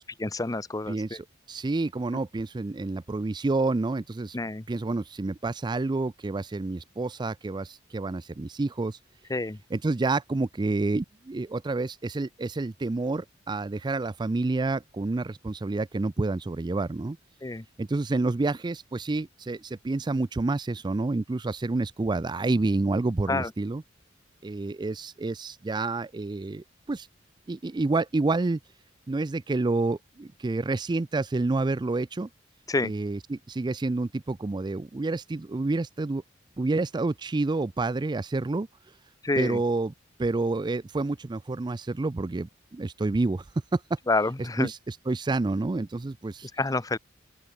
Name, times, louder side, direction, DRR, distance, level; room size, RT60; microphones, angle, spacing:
voice 1, 0.0-1.2 4.3-4.6 9.3-9.6 17.4-17.6 23.3-23.5 32.7-32.9 39.2-39.6 44.1-44.7 46.6-47.0, left 2 dB, 20° left, 0.7 m, -28 dB
voice 2, 0.9-4.4 4.7-9.0 9.7-17.2 17.8-23.8 24.4-27.1 27.5-28.6 29.1-32.3 32.8-36.2 36.6-38.7 39.4-39.9 40.2-43.4 43.7-44.0 44.6-46.5, right 3 dB, 25° right, 0.4 m, -29 dB
open air
head